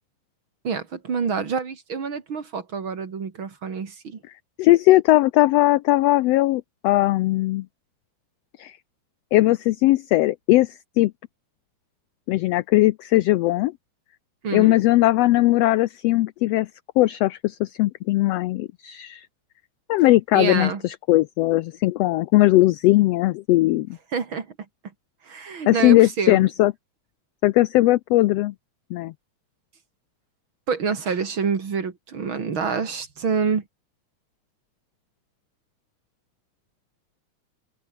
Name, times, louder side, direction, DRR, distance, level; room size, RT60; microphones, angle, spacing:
voice 1, 0.6-4.2 14.4-14.7 20.3-20.8 24.1-24.5 25.3-26.5 30.7-33.6, right 5 dB, 45° right, 2.8 m, -27 dB
voice 2, 4.6-7.6 8.6-8.8 9.3-11.1 12.3-13.7 14.5-16.7 17.0-19.3 19.9-23.9 25.7-26.7 27.4-28.5 28.9-29.1, left 17 dB, 85° left, 1.4 m, -19 dB
omnidirectional pair, 3.4 m